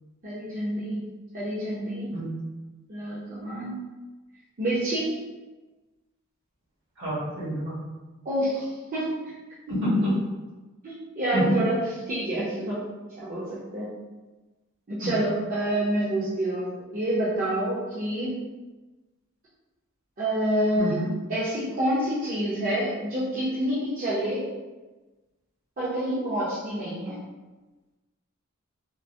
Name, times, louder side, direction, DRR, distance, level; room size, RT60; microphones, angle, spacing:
voice 1, 0.2-1.0 1.3-2.2 2.9-3.8 4.6-5.2 8.2-9.1 9.7-9.8 10.8-12.8 13.2-13.9 14.9-18.4 20.2-24.4 25.8-27.2, right 1 dB, 40° right, -10 dB, 0.6 m, -28 dB
voice 2, 7.0-7.8 9.7-10.2 11.3-11.6 20.8-21.0, equal, 65° right, -7 dB, 1.3 m, -26 dB
3.7 x 2.1 x 2.6 m, 1.2 s
head